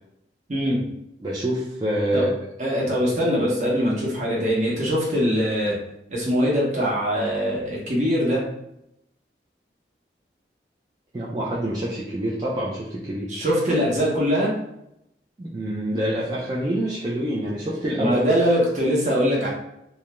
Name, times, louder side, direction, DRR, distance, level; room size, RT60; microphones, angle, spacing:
voice 1, 0.5-0.9 2.1-2.3 2.6-5.8 6.1-8.4 13.3-14.5 18.0-19.5, equal, 40° right, -4 dB, 0.8 m, -22 dB
voice 2, 1.2-2.3 11.1-13.3 15.4-18.2, right 1 dB, 25° right, -6 dB, 0.3 m, -26 dB
2.3 x 2.1 x 2.9 m, 0.81 s
head